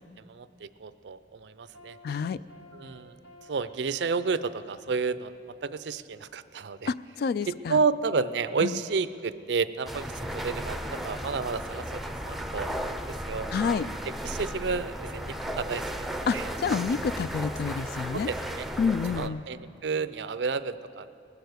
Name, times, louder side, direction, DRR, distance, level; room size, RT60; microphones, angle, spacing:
voice 1, 0.3-2.0 2.7-3.1 3.5-6.9 7.7-13.0 13.3-13.5 14.2-16.5 18.1-18.7 19.1-21.1, right 4 dB, 70° right, 14 dB, 0.5 m, -31 dB
sound 1, 1.5-5.7, left 1 dB, 75° left, 1.8 m, -55 dB
voice 2, 2.0-2.4 6.9-7.8 8.6-8.7 13.5-13.9 16.3-18.3 18.8-19.4, left 6 dB, 60° left, 17 dB, 0.3 m, -28 dB
sound 2, 9.9-19.3, equal, ahead, 0.5 m, -35 dB
20.0 x 6.8 x 8.0 m, 2.6 s
head